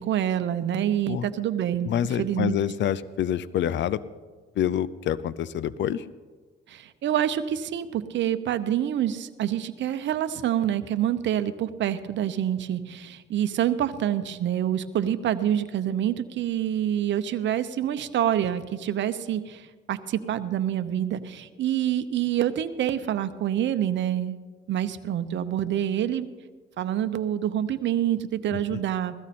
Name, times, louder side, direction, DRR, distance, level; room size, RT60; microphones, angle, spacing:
voice 1, 0.0-1.9 2.2-2.5 6.7-24.4 24.7-26.3 26.8-29.1, right 10 dB, 70° right, 10 dB, 0.8 m, -27 dB
voice 2, 1.8-4.0 4.6-6.1 28.5-28.8, left 10 dB, 65° left, 17 dB, 0.5 m, -27 dB
16.5 x 14.0 x 4.2 m, 1.4 s
cardioid pair, 90°, 20 cm